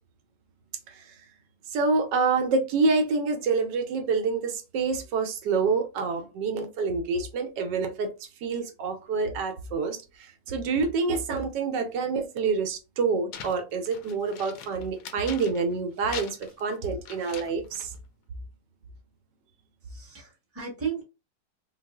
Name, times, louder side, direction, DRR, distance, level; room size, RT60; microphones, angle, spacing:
voice 1, 1.7-8.1 8.4-17.9, right 4 dB, 80° right, 1.2 m, -27 dB
sound 1, 13.3-15.8 16.1-18.0, left 7 dB, 70° left, 0.8 m, -42 dB
voice 2, 19.8-21.0, right 6 dB, 10° right, 0.9 m, -34 dB
3.8 x 2.3 x 2.2 m
omnidirectional pair, 1.9 m